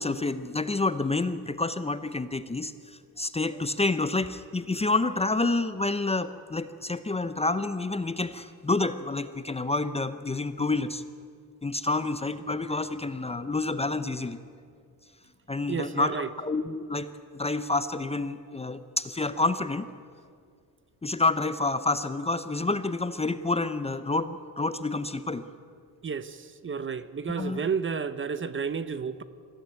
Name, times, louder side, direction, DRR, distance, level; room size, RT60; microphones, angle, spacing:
voice 1, 0.0-11.0 11.6-14.4 15.5-19.9 21.0-25.4 27.4-27.6, left 3 dB, 15° left, 12 dB, 0.7 m, -28 dB
voice 2, 15.7-16.3 26.0-29.2, right 6 dB, 30° right, 14 dB, 0.8 m, -31 dB
21.0 x 15.5 x 9.4 m, 2.2 s
cardioid pair, 115°, 38 cm